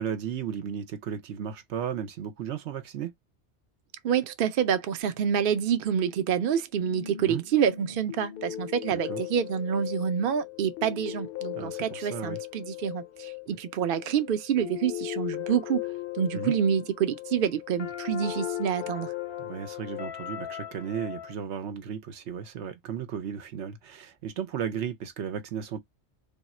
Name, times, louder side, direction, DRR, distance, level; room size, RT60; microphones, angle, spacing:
voice 1, 0.0-3.1 7.2-7.4 8.9-9.2 11.5-12.4 16.3-16.5 19.4-25.8, right 8 dB, 80° right, 1.0 m, -35 dB
voice 2, 4.0-15.8 16.1-19.1, right 8 dB, 60° right, 0.7 m, -27 dB
Simple Piano Improvisation waw., 6.8-21.3, left 13 dB, 60° left, 0.7 m, -38 dB
3.5 x 2.4 x 4.1 m
omnidirectional pair, 1.1 m